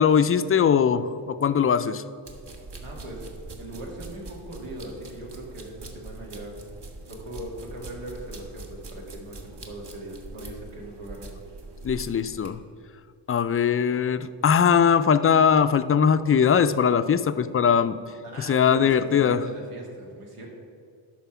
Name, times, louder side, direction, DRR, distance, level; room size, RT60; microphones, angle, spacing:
voice 1, 0.0-2.0 11.8-12.6 13.3-18.0 18.4-19.5, left 7 dB, 30° left, 12 dB, 0.4 m, -21 dB
sound 1, 2.3-12.5, right 2 dB, 55° right, 1.4 m, -43 dB
voice 2, 2.8-3.3 3.6-6.5 7.1-11.3 18.2-20.5, right 1 dB, 90° right, -1 dB, 2.3 m, -40 dB
11.5 x 4.5 x 5.9 m, 2.3 s
cardioid pair, 85°, 49 cm